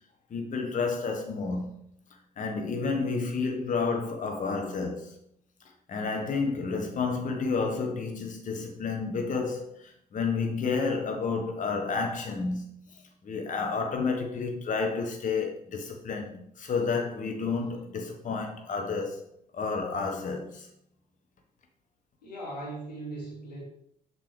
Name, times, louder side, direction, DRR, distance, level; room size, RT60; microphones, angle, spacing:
voice 1, 0.3-1.7 2.4-5.2 5.9-19.2 19.5-20.7, left 4 dB, 40° left, 1.2 m, -30 dB
voice 2, 22.2-23.6, right 2 dB, 85° left, 1.8 m, -38 dB
7.0 x 6.1 x 3.3 m
figure-of-eight pair, 50°, 20 cm